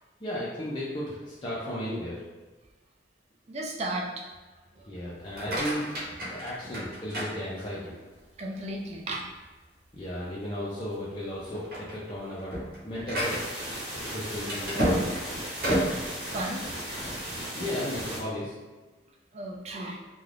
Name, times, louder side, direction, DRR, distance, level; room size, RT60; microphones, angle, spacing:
voice 1, 0.2-2.2 4.8-5.9 6.3-7.9 9.9-12.6 12.8-13.4 14.0-15.0 17.5-18.5, left 1 dB, 25° left, -8 dB, 0.5 m, -35 dB
voice 2, 3.5-4.3 4.8-4.9 6.7-6.8 8.4-9.3 16.2-16.7 19.3-20.0, right 1 dB, 35° right, 0 dB, 0.4 m, -35 dB
sound 1, 5.2-8.0 8.5-9.0 9.4-9.5 9.9-10.1 10.8-11.0 11.4-17.3, equal, 55° right, 0.8 m, -32 dB
sound 2, 13.2-18.2, equal, 15° right, 1.0 m, -36 dB
2.5 x 2.3 x 3.2 m, 1.3 s
head